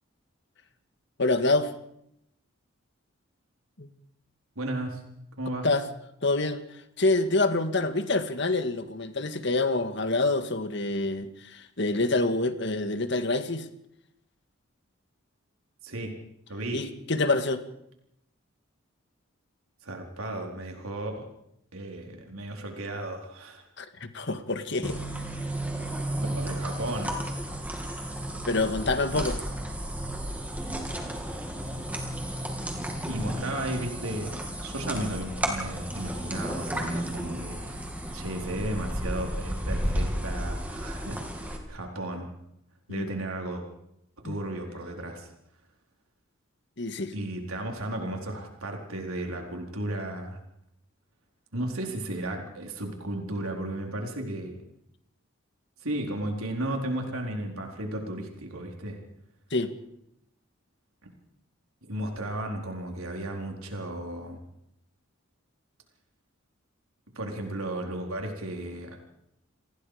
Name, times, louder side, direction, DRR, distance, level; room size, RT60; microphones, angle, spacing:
voice 1, 1.2-1.7 3.8-3.9 5.6-5.8 6.2-6.6 7.0-13.7 16.7-17.6 23.8-25.0 28.5-29.4 42.9-43.1 44.2-44.4 46.8-47.1 59.5-59.7, left 2 dB, 55° left, 1.9 m, -26 dB
voice 2, 4.6-5.0 5.4-5.7 15.8-16.1 16.5-16.8 19.8-21.3 21.7-23.6 26.3-27.1 33.1-34.3 34.6-37.9 38.1-42.3 42.9-43.6 44.2-45.3 47.1-50.4 51.5-54.5 55.8-59.0 61.8-64.4 67.1-69.0, right 1 dB, 85° right, 4.4 m, -34 dB
sound 1, 24.8-41.6, right 1 dB, 5° right, 3.0 m, -33 dB
29.5 x 20.0 x 5.1 m
head